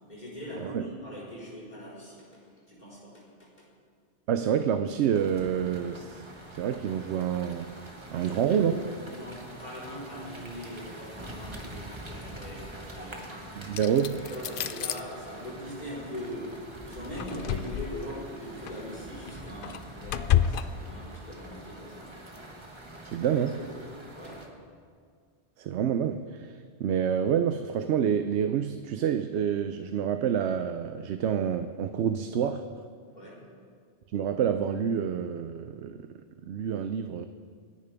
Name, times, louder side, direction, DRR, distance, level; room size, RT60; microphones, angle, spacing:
voice 1, 0.1-2.3 2.7-3.5 8.1-13.5 14.2-16.5 16.9-22.2 23.3-23.8 24.1-24.4 33.1-33.4, left 1 dB, 40° left, -6 dB, 4.4 m, -41 dB
voice 2, 4.3-6.3 6.5-7.7 8.1-8.7 13.6-14.3 23.0-23.6 25.6-32.6 34.1-36.1 36.5-37.3, right 8 dB, 85° right, 9 dB, 0.9 m, -28 dB
sound 1, 5.1-24.5, right 1 dB, 25° right, 1.4 m, -45 dB
sound 2, 13.7-15.0 17.0-18.1 18.7-18.8 19.3-20.6, left 10 dB, 60° left, 0.7 m, -29 dB
27.5 x 10.5 x 3.4 m, 2.1 s
omnidirectional pair, 1.1 m